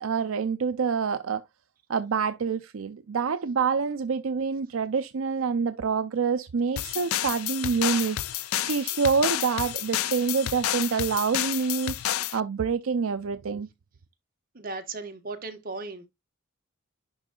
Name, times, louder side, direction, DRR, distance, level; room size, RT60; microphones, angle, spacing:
voice 1, 0.0-1.4 1.9-13.7, right 5 dB, 75° right, 0.5 m, -27 dB
sound 1, 6.8-12.4, left 12 dB, 90° left, 0.4 m, -30 dB
voice 2, 14.5-16.1, right 3 dB, 45° right, 1.4 m, -36 dB
11.0 x 3.8 x 2.3 m
head